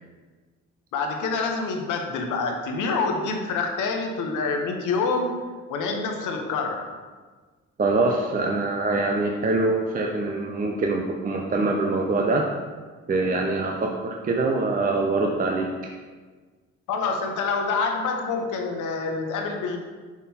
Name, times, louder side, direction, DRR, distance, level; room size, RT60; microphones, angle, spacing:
voice 1, 0.9-5.3 5.7-6.9 16.9-19.8, left 4 dB, 85° left, 3 dB, 0.9 m, -26 dB
voice 2, 7.8-12.5 13.1-15.7, right 3 dB, 30° right, 1 dB, 0.6 m, -24 dB
5.9 x 3.7 x 4.3 m, 1.4 s
cardioid pair, 90°, 30 cm